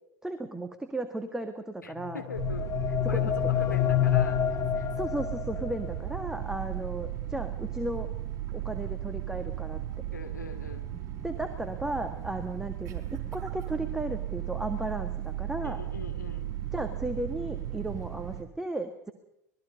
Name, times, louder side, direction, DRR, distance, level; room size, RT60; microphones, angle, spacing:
voice 1, 0.2-2.2 3.1-3.3 5.0-8.1 8.5-9.8 10.9-15.8 16.7-19.1, right 1 dB, 5° right, 7 dB, 1.7 m, -35 dB
voice 2, 1.8-4.4 4.7-4.9 10.1-10.9 15.6-16.5, left 4 dB, 80° left, 5 dB, 2.5 m, -41 dB
sound 1, 2.0-5.9, left 11 dB, 30° left, 2.0 m, -28 dB
sound 2, 2.3-18.4, right 12 dB, 40° right, 3.9 m, -36 dB
26.0 x 19.5 x 5.2 m, 0.83 s
figure-of-eight pair, 80°, 9 cm